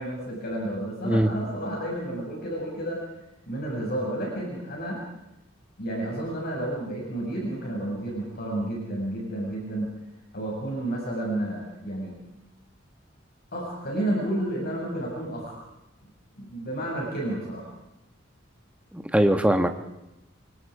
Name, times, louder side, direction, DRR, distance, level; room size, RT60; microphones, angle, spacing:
voice 1, 0.0-3.0 3.5-5.0 5.8-9.9 10.3-12.1 13.5-15.6 16.4-17.7, right 1 dB, 55° left, -2 dB, 6.9 m, -31 dB
voice 2, 18.9-19.7, right 1 dB, 5° right, 6 dB, 1.7 m, -21 dB
29.0 x 25.0 x 5.0 m, 0.92 s
head